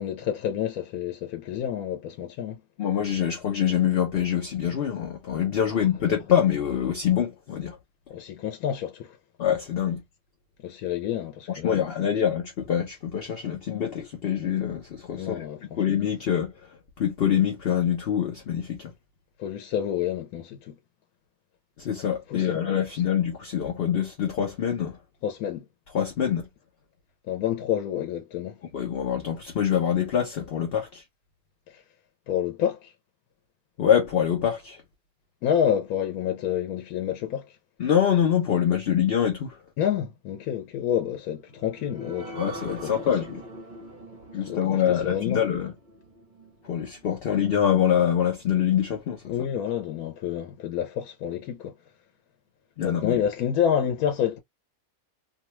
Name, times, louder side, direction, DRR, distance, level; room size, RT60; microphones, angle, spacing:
voice 1, 0.0-2.6 5.7-5.8 8.1-9.2 10.6-11.9 15.2-15.8 19.4-20.8 22.3-22.6 25.2-25.6 27.3-28.6 31.7-31.8 32.3-32.9 35.4-37.5 39.8-43.1 44.5-45.4 49.3-51.7 52.8-54.4, left 9 dB, 85° left, 1.1 m, -29 dB
voice 2, 2.8-7.8 9.4-10.0 11.6-15.5 15.8-16.5 17.0-18.9 21.8-25.0 25.9-26.5 28.7-31.0 33.8-34.8 37.8-39.6 42.4-43.4 44.3-45.7 46.6-49.3 52.8-53.2, left 9 dB, 55° left, 0.7 m, -25 dB
sound 1, 41.4-48.4 48.9-49.0 49.3-49.4, right 1 dB, 40° right, 0.9 m, -43 dB
2.7 x 2.2 x 3.0 m
omnidirectional pair, 1.5 m